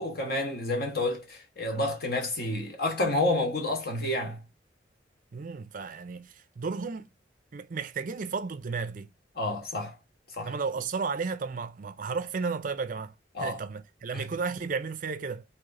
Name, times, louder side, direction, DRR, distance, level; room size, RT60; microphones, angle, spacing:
voice 1, 0.0-4.4 9.3-9.9 10.4-10.5 13.3-13.6 14.1-14.3, left 2 dB, 55° left, 1.3 m, -29 dB
voice 2, 5.3-7.1 7.5-9.1 10.4-15.4, right 5 dB, 45° right, 0.4 m, -33 dB
3.2 x 2.9 x 3.6 m
head